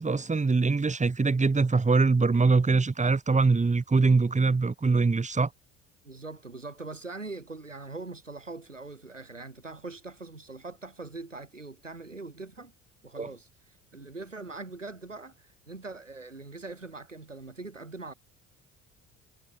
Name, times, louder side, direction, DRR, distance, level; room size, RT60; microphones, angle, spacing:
voice 1, 0.0-5.5 13.2-13.3, right 4 dB, 20° right, 5.0 m, -23 dB
voice 2, 6.0-12.7 13.0-13.5 13.9-18.1, right 3 dB, 90° right, 7.3 m, -42 dB
figure-of-eight pair, 55°, 36 cm